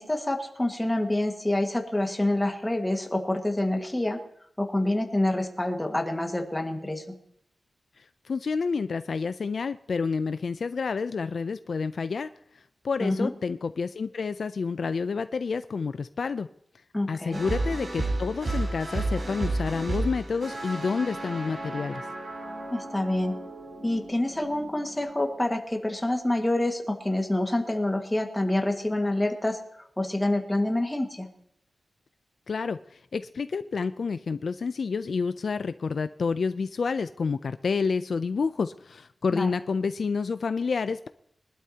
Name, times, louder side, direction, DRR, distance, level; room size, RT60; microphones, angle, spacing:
voice 1, 0.0-4.2 4.6-7.2 13.0-13.3 16.9-17.4 22.7-23.4 23.8-31.3 39.3-39.5, left 1 dB, 10° left, 3 dB, 1.7 m, -27 dB
voice 2, 8.0-12.3 12.5-16.5 17.1-22.1 32.5-41.1, left 5 dB, 60° left, 11 dB, 0.4 m, -29 dB
sound 1, 17.3-25.5, right 2 dB, 55° right, 6.2 m, -33 dB
23.0 x 12.0 x 2.9 m, 0.73 s
wide cardioid pair, 155°, 0 cm